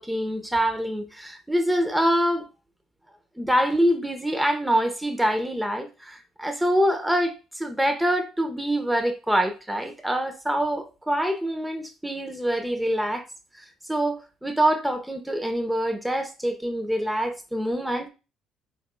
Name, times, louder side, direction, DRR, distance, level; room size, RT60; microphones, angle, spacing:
voice 1, 0.0-2.5 3.4-13.2 13.9-18.1, equal, 5° right, 0.8 m, -25 dB
4.1 x 3.6 x 2.2 m
supercardioid pair, 80°, 0 cm